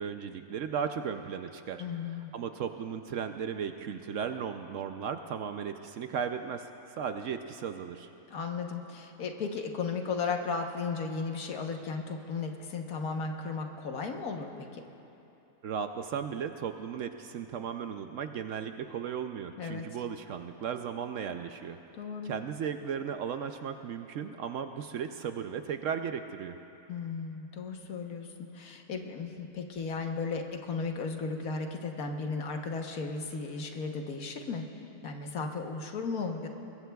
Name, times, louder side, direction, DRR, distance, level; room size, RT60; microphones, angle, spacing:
voice 1, 0.0-6.7 7.0-8.1 15.6-21.8 22.2-26.6, right 7 dB, 65° right, 7 dB, 0.8 m, -36 dB
voice 2, 1.8-2.3 8.3-14.8 19.6-19.8 21.9-22.3 26.9-28.3 28.5-34.6 35.0-36.5, left 4 dB, 70° left, 3 dB, 1.5 m, -35 dB
23.0 x 21.0 x 2.3 m, 2.9 s
omnidirectional pair, 1.6 m